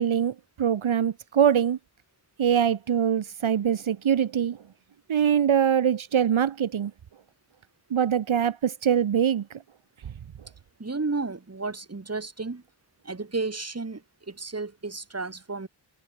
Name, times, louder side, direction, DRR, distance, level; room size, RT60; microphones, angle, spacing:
voice 1, 0.0-1.8 2.4-4.6 5.1-6.9 7.9-9.4, right 8 dB, 75° right, 1.1 m, -23 dB
voice 2, 10.8-12.6 13.0-14.0 14.3-15.7, right 3 dB, 30° right, 2.1 m, -32 dB
cardioid pair, 40°, 48 cm